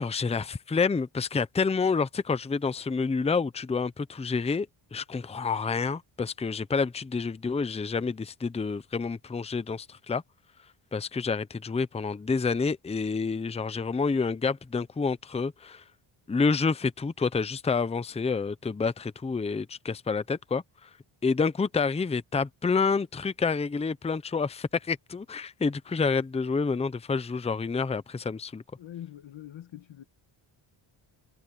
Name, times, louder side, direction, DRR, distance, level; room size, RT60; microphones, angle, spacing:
voice 1, 0.0-10.2 10.9-15.8 16.3-20.9 21.2-28.6, left 4 dB, 15° left, 0.6 m, -28 dB
voice 2, 28.8-30.0, left 11 dB, 65° left, 1.5 m, -43 dB
cardioid pair, 130°, 50 cm